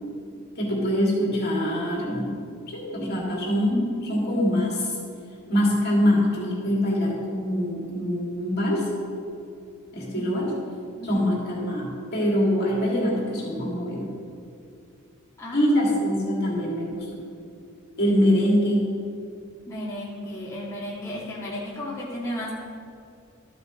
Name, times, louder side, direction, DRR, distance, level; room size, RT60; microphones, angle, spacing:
voice 1, 0.6-2.4 2.7-4.9 5.5-8.9 9.9-10.5 11.1-14.1 15.5-17.2 18.0-19.0, equal, 50° left, -4 dB, 2.4 m, -24 dB
voice 2, 11.0-11.3 15.4-15.7 19.7-22.5, left 1 dB, 15° left, -8 dB, 1.8 m, -34 dB
13.5 x 7.7 x 3.1 m, 2.5 s
head